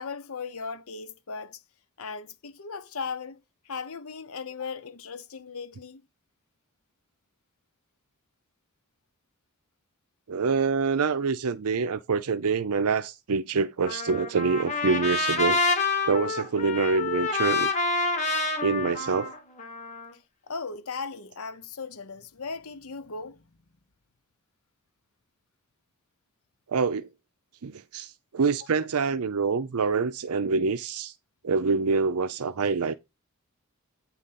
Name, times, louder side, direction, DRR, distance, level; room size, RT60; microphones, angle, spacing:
voice 1, 0.0-1.6 2.0-3.4 3.7-6.0 20.5-23.4, left 5 dB, 75° left, 0.8 m, -37 dB
voice 2, 10.3-15.6 16.1-17.7 18.6-19.3 26.7-27.1 27.6-31.1 31.4-32.9, right 4 dB, 85° right, 0.6 m, -26 dB
Trumpet, 13.9-20.1, left 3 dB, 30° left, 1.6 m, -28 dB
9.0 x 3.9 x 5.7 m
head